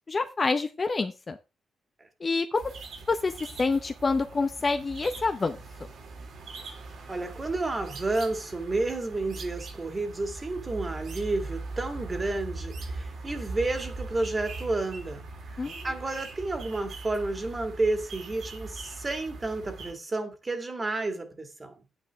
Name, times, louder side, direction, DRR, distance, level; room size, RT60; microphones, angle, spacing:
voice 1, 0.1-1.4 2.2-2.8 3.1-3.3 3.6-5.6 15.6-15.9, left 3 dB, 30° left, 0.7 m, -27 dB
sound 1, 2.5-19.9, right 3 dB, 70° right, 3.9 m, -41 dB
voice 2, 7.1-21.7, right 2 dB, 20° right, 2.2 m, -31 dB
10.5 x 9.5 x 3.5 m
cardioid pair, 135°, 0 cm